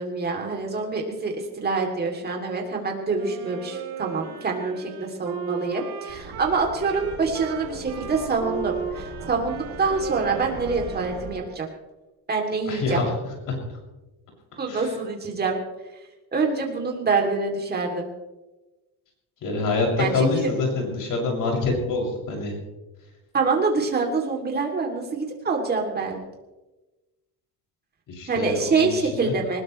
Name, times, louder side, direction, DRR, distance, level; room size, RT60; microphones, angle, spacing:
voice 1, 0.0-11.7 12.3-13.0 14.6-15.6 16.3-18.1 20.0-20.5 23.3-26.2 28.3-29.6, right 4 dB, 25° right, 1 dB, 3.1 m, -26 dB
Wind instrument woodwind instrument, 3.2-11.6, right 7 dB, 70° right, 4.3 m, -36 dB
sound 1, 6.1-11.3, right 4 dB, 45° right, 3.3 m, -39 dB
voice 2, 12.6-13.8 14.6-14.9 19.4-22.6 28.1-29.3, left 3 dB, 50° left, -1 dB, 6.9 m, -26 dB
20.5 x 20.0 x 3.3 m, 1.1 s
cardioid pair, 160°, 40 cm